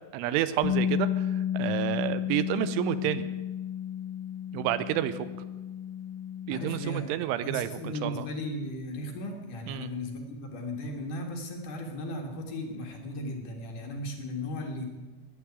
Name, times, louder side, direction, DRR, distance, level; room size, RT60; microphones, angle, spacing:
voice 1, 0.1-1.3 1.5-3.3 4.5-5.3 6.5-8.3 9.7-9.9, right 12 dB, 80° right, 14 dB, 3.1 m, -30 dB
Bass guitar, 0.6-6.9, left 9 dB, 75° left, 3.8 m, -32 dB
voice 2, 6.5-7.0 7.4-14.9, left 1 dB, 55° left, 2 dB, 2.5 m, -36 dB
14.0 x 10.5 x 9.5 m, 1.2 s
omnidirectional pair, 5.7 m